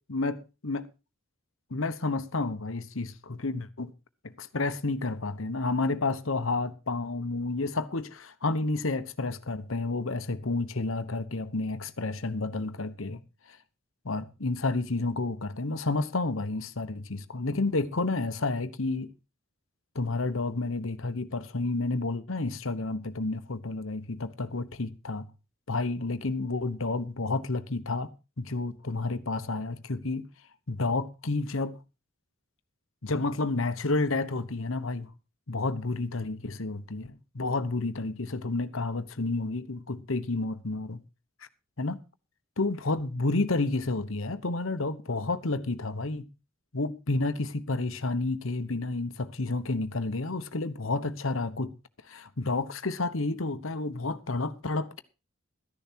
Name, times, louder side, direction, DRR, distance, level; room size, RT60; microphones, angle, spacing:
voice 1, 0.1-0.8 1.7-3.9 4.4-13.2 13.5-13.6 14.0-19.1 19.9-25.3 25.7-28.1 28.4-30.3 30.7-31.7 33.0-35.1 35.5-41.0 41.8-42.0 42.6-46.3 46.7-51.7 52.1-55.0, left 3 dB, 75° left, 1.1 m, -30 dB
13.5 x 10.5 x 4.5 m
head